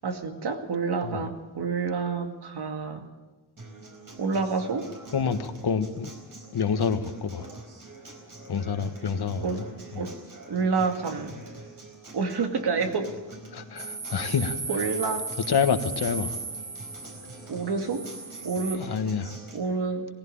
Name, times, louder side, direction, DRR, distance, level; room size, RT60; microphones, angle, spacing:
voice 1, 0.0-3.0 4.2-4.9 9.4-9.7 9.9-10.1 10.5-11.4 12.1-13.2 14.7-15.3 17.5-18.0 18.4-18.9 19.5-20.1, right 4 dB, 85° right, 2.3 m, -28 dB
Acoustic guitar, 3.6-19.6, right 2 dB, 60° right, 4.7 m, -45 dB
voice 2, 5.1-6.1 6.5-7.5 8.5-9.7 9.9-10.0 13.5-14.6 15.5-16.4 18.7-19.4, left 6 dB, 75° left, 1.5 m, -27 dB
sound 1, 13.8-18.8, right 4 dB, 30° right, 1.6 m, -36 dB
19.0 x 15.5 x 8.8 m
wide cardioid pair, 110°, 39 cm